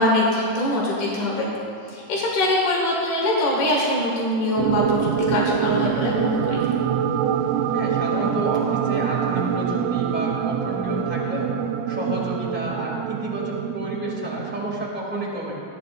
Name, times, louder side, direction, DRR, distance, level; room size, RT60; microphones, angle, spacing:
voice 1, 0.0-1.5 1.9-6.6, left 1 dB, 75° left, -5 dB, 3.6 m, -23 dB
sound 1, 4.6-14.9, right 8 dB, 80° right, 1.6 m, -25 dB
voice 2, 7.7-11.5 11.9-15.5, equal, 5° right, -5 dB, 2.1 m, -30 dB
18.0 x 12.0 x 2.6 m, 2.5 s
omnidirectional pair, 3.6 m